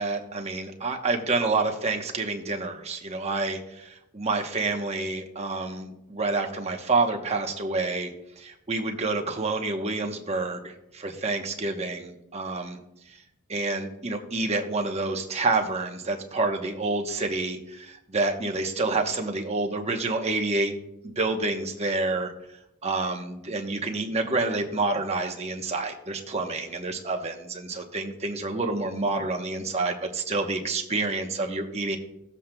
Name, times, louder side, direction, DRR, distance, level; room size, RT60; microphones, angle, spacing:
voice 1, 0.0-12.8 13.1-13.2 13.5-20.7 21.0-22.3 22.8-32.0, right 3 dB, 30° right, 3 dB, 1.0 m, -28 dB
16.0 x 7.4 x 2.3 m, 0.84 s
head